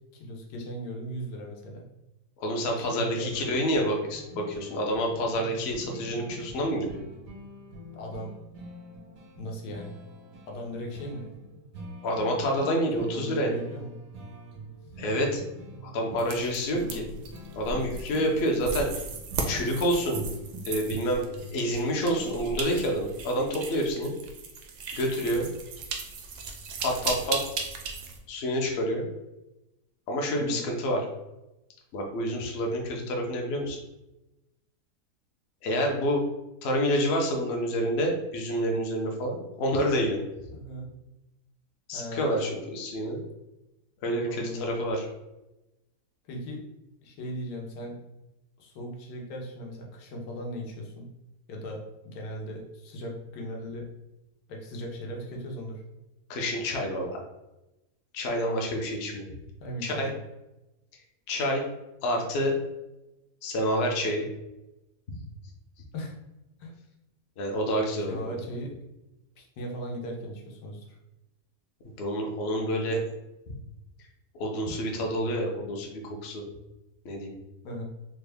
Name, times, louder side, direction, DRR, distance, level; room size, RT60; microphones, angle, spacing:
voice 1, 0.1-1.9 2.8-3.3 7.9-8.3 9.4-9.9 10.5-11.3 12.9-13.9 16.7-17.2 30.3-30.7 40.5-40.9 41.9-42.5 44.2-44.6 46.3-46.6 47.0-48.0 48.6-51.1 51.5-53.9 54.5-55.8 59.6-60.2 65.9-66.1 66.6-66.7 68.1-68.8 69.4-71.0 77.6-77.8, equal, 90° left, 0 dB, 1.3 m, -38 dB
voice 2, 2.4-7.0 12.0-13.5 15.0-15.4 15.9-17.0 17.6-19.0 19.5-20.2 20.6-21.2 21.5-24.1 24.9-25.5 26.8-27.4 28.3-29.1 30.1-31.0 31.9-33.8 35.6-36.2 36.6-40.2 41.9-43.2 44.0-45.0 56.3-57.2 58.1-59.3 59.8-60.1 61.3-61.6 62.0-62.6 63.4-64.3 67.4-68.2 72.0-73.0 74.3-76.4 77.0-77.3, equal, 60° left, 1 dB, 0.7 m, -28 dB
sound 1, 3.0-22.5, right 1 dB, 85° right, 1.5 m, -45 dB
sound 2, 16.2-28.2, right 4 dB, 70° right, 0.7 m, -37 dB
3.6 x 2.2 x 3.3 m, 0.97 s
omnidirectional pair, 1.7 m